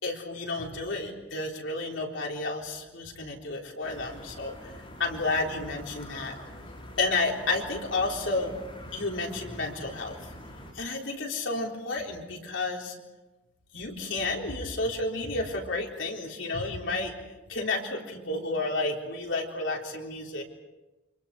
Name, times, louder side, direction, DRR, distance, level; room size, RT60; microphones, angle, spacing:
voice 1, 0.0-4.7 5.0-6.3 7.0-8.5 8.9-10.2 10.7-12.9 13.7-17.1 17.5-20.4, left 3 dB, 85° left, 0 dB, 3.9 m, -31 dB
sound 1, 3.8-10.7, left 1 dB, 30° left, 4.6 m, -45 dB
29.0 x 26.0 x 4.8 m, 1.1 s
head